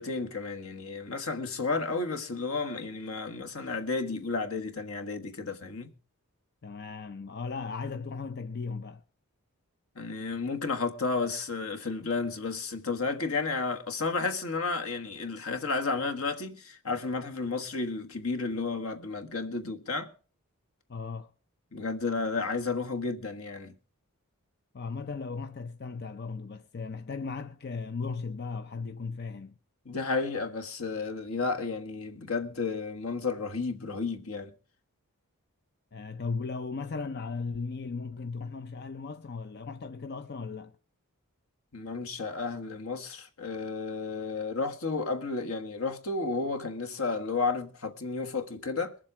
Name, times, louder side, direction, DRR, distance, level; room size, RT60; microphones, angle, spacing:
voice 1, 0.0-5.9 9.9-20.1 21.7-23.7 29.8-34.5 41.7-49.0, left 4 dB, 75° left, 1.4 m, -32 dB
voice 2, 6.6-9.0 20.9-21.3 24.7-29.6 35.9-40.7, left 4 dB, 45° left, 0.5 m, -36 dB
22.0 x 7.5 x 4.8 m
head